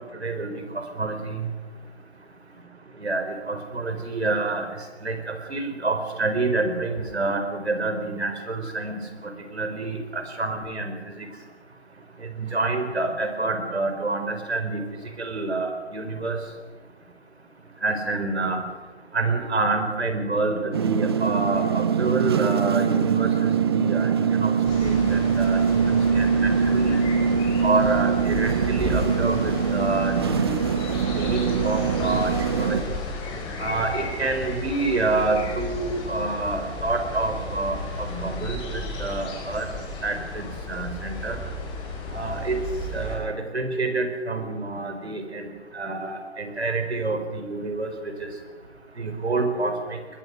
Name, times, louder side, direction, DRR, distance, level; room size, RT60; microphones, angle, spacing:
voice 1, 0.2-0.6 1.0-1.5 3.0-4.7 5.0-9.0 9.5-10.9 12.4-14.8 15.2-16.4 17.8-18.6 19.1-24.5 24.8-27.0 27.6-30.6 31.2-31.4 31.6-32.8 33.6-39.7 40.0-41.4 42.1-42.6 42.9-45.5 45.7-47.9 49.0-50.0, right 3 dB, 70° right, 6 dB, 4.8 m, -27 dB
sound 1, 20.7-32.8, right 7 dB, 25° right, 0.6 m, -23 dB
sound 2, 24.6-43.2, left 2 dB, 15° left, 4.6 m, -33 dB
21.5 x 21.5 x 6.3 m, 1.4 s
figure-of-eight pair, 140°, 33 cm